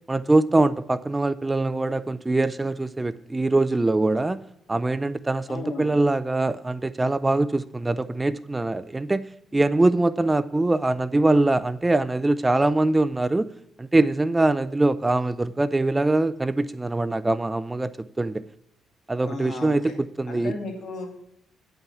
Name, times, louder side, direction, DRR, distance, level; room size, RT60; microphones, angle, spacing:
voice 1, 0.1-4.4 4.7-9.3 9.5-13.5 13.8-18.4 19.1-20.6, right 2 dB, 15° right, 16 dB, 0.4 m, -23 dB
voice 2, 5.5-5.9 19.2-19.9 20.3-21.1, left 3 dB, 55° left, 3 dB, 2.3 m, -35 dB
9.2 x 5.6 x 7.1 m, 0.76 s
cardioid pair, 90°, 0 cm